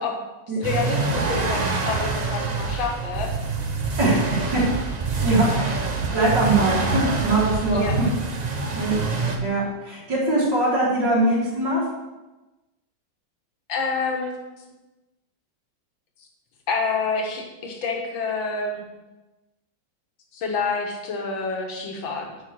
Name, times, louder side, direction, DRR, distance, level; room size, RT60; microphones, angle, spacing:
voice 1, 0.6-3.3 5.3-5.7 7.7-8.0 13.7-14.4 16.7-18.8 20.3-22.4, left 4 dB, 75° left, 2 dB, 2.1 m, -28 dB
sound 1, 0.6-9.4, right 4 dB, 80° right, 0.3 m, -26 dB
voice 2, 4.0-4.6 5.2-5.8 6.1-7.9 8.7-9.0 9.4-11.8, right 2 dB, 60° right, -11 dB, 3.3 m, -22 dB
9.4 x 4.6 x 6.3 m, 1.1 s
omnidirectional pair, 2.2 m